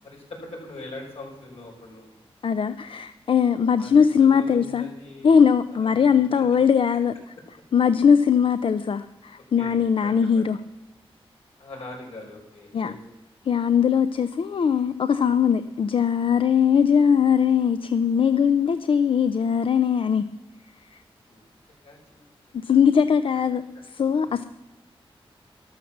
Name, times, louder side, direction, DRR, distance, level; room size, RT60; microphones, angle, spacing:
voice 1, 0.0-2.1 3.8-5.3 5.9-6.5 9.6-10.5 11.6-13.0 15.2-15.4 21.3-21.4 21.8-22.3 22.6-22.8 23.5-23.6 24.2-24.4, left 2 dB, 85° left, -1 dB, 5.7 m, -42 dB
voice 2, 2.4-4.9 5.2-7.1 7.7-10.6 12.7-12.9 13.5-20.2 22.6-24.4, left 7 dB, 65° left, 12 dB, 0.5 m, -20 dB
13.0 x 12.5 x 7.3 m, 1.0 s
wide cardioid pair, 135°, 10 cm